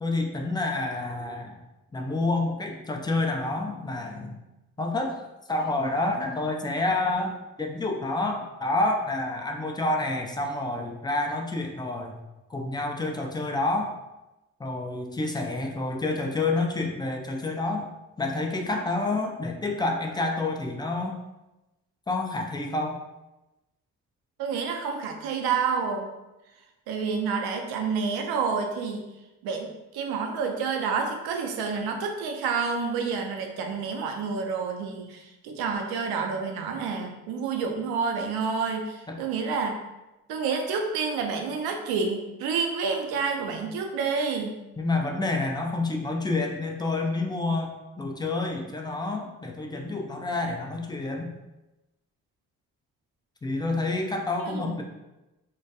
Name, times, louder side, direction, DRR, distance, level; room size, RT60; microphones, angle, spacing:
voice 1, 0.0-1.6 1.9-4.4 4.8-5.2 5.5-12.2 12.5-13.9 14.6-17.9 18.2-21.2 22.1-23.0 39.1-39.2 44.8-51.3 53.4-54.8, left 2 dB, 10° left, 2 dB, 0.3 m, -28 dB
voice 2, 24.4-26.1 26.9-29.1 29.4-39.8 40.3-44.6 54.5-54.8, right 5 dB, 70° right, 3 dB, 0.5 m, -29 dB
2.2 x 2.2 x 2.7 m, 1.0 s
hypercardioid pair, 45°, 39 cm